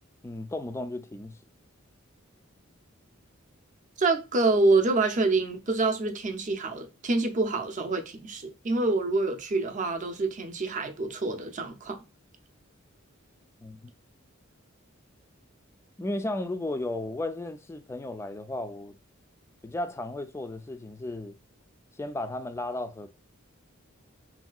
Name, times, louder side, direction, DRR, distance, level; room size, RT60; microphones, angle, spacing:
voice 1, 0.2-1.4 13.6-13.9 16.0-18.9 19.6-21.4 22.0-23.1, left 2 dB, 15° left, 0.3 m, -34 dB
voice 2, 4.0-12.0, right 3 dB, 35° right, 0.5 m, -26 dB
3.1 x 2.7 x 2.3 m
head